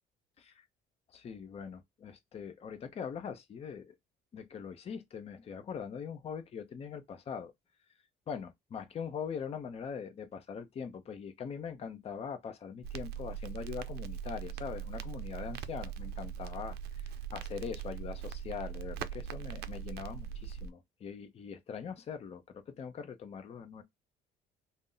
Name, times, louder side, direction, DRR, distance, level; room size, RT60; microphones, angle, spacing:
voice 1, 1.1-4.0 4.3-7.5 8.3-23.8, left 6 dB, 35° left, 0.6 m, -42 dB
Crackle, 12.8-20.7, right 8 dB, 70° right, 0.4 m, -41 dB
2.6 x 2.1 x 3.7 m
cardioid pair, 110°, 17 cm